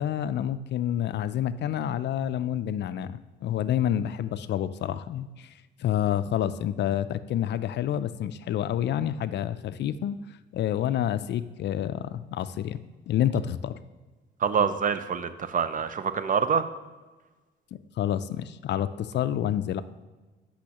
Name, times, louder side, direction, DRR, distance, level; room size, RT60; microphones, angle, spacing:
voice 1, 0.0-5.5 5.8-10.2 10.5-12.8 13.1-13.8 18.0-19.8, left 10 dB, 60° left, 14 dB, 0.4 m, -28 dB
voice 2, 14.4-16.7, right 6 dB, 45° right, 12 dB, 0.5 m, -26 dB
8.4 x 5.6 x 2.9 m, 1.2 s
cardioid pair, 90°, 20 cm